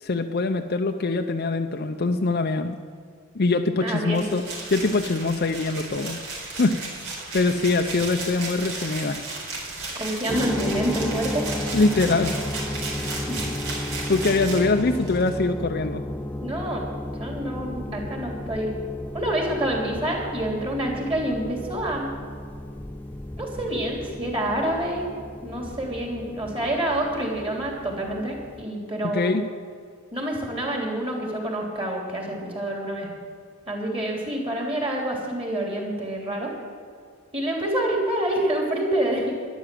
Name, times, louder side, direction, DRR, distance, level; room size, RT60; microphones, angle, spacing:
voice 1, 0.0-2.8 3.3-4.4 4.7-6.2 6.6-7.1 7.3-9.2 11.7-12.4 14.1-16.0 29.1-29.4, left 3 dB, 45° left, 5 dB, 0.6 m, -23 dB
voice 2, 3.8-4.3 9.9-11.5 13.3-13.5 16.4-16.8 17.2-18.7 19.1-22.1 23.4-25.1 25.4-29.4 30.1-33.1 33.7-36.5 37.3-39.3, right 1 dB, 25° right, 0 dB, 3.2 m, -27 dB
sound 1, 4.1-15.3, right 3 dB, 70° right, 4.4 m, -34 dB
sound 2, 10.3-28.6, left 1 dB, 10° left, 0.3 m, -34 dB
12.5 x 11.0 x 7.8 m, 2.1 s
head